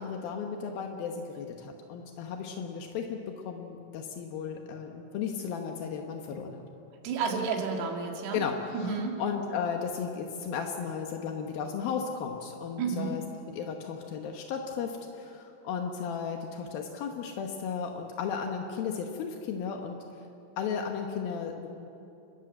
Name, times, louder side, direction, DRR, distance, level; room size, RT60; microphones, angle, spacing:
voice 1, 0.0-6.6 8.3-13.2 13.5-20.0 20.6-21.7, left 6 dB, 80° left, 3 dB, 2.1 m, -35 dB
voice 2, 7.0-8.4 8.7-9.2 12.8-13.2, right 5 dB, 85° right, 1 dB, 5.0 m, -31 dB
30.0 x 14.0 x 7.8 m, 2.7 s
omnidirectional pair, 6.0 m